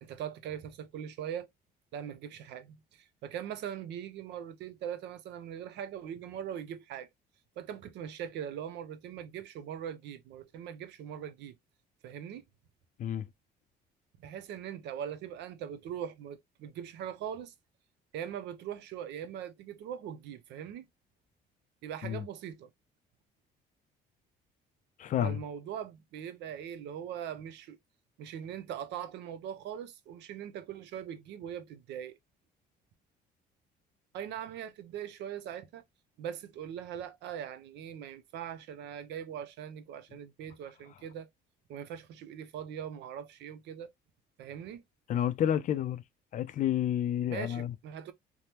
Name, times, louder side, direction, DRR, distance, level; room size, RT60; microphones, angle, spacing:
voice 1, 0.0-1.5 1.9-7.1 7.6-11.6 12.0-12.4 14.2-17.5 18.1-20.9 21.8-22.7 25.2-27.8 28.2-32.2 34.1-35.8 36.2-41.3 41.7-43.9 44.4-44.8 47.3-48.1, right 9 dB, 75° right, 0.5 m, -41 dB
voice 2, 25.0-25.4 45.1-46.0 46.3-47.7, left 10 dB, 45° left, 0.4 m, -30 dB
3.3 x 2.1 x 2.8 m
cardioid pair, 110°, 18 cm